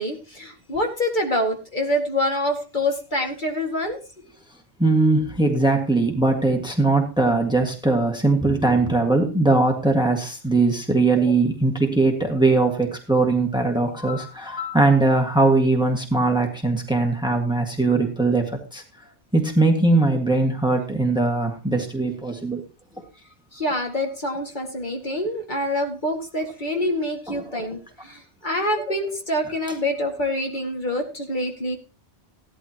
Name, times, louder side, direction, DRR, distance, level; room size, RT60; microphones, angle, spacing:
voice 1, 0.0-4.0 23.5-31.8, left 1 dB, 45° left, 1 dB, 2.1 m, -26 dB
voice 2, 4.8-18.8 19.3-22.6 27.3-27.6, right 2 dB, 5° right, 3 dB, 1.7 m, -20 dB
16.0 x 11.5 x 2.9 m, 0.32 s
omnidirectional pair, 1.2 m